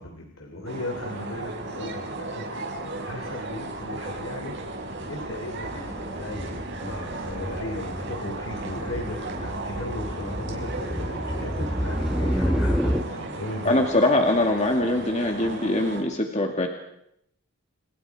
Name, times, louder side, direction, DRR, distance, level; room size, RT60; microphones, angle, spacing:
voice 1, 0.0-13.9 15.4-15.5, left 1 dB, 65° left, 3 dB, 3.3 m, -37 dB
sound 1, 0.7-16.0, right 2 dB, 55° right, 6.1 m, -35 dB
sound 2, 3.8-4.2 4.4-13.0, equal, 5° right, 1.1 m, -30 dB
voice 2, 13.6-16.7, left 1 dB, 30° left, 3 dB, 2.2 m, -22 dB
29.5 x 29.0 x 4.9 m, 0.77 s
head